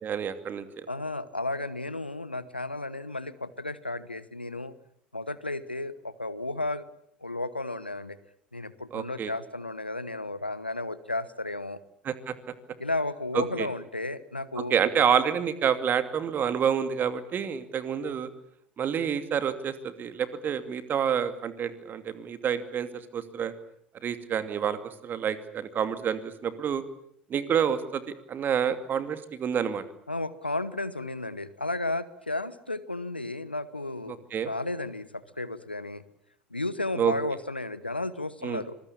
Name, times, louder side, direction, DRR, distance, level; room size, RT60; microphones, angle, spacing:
voice 1, 0.0-0.9 8.9-9.3 12.0-12.3 13.3-13.7 14.6-18.3 18.8-23.5 24.0-26.8 27.3-28.0 28.3-29.8 34.3-34.5 37.0-37.1 38.4-38.6, right 8 dB, 35° right, 11 dB, 2.6 m, -28 dB
voice 2, 0.9-4.7 5.1-6.9 7.2-8.2 8.5-11.8 12.8-14.7 30.1-34.2 34.5-36.0 36.5-38.8, left 2 dB, 90° left, 16 dB, 1.1 m, -33 dB
26.0 x 20.5 x 8.8 m, 0.69 s
figure-of-eight pair, 65°, 5 cm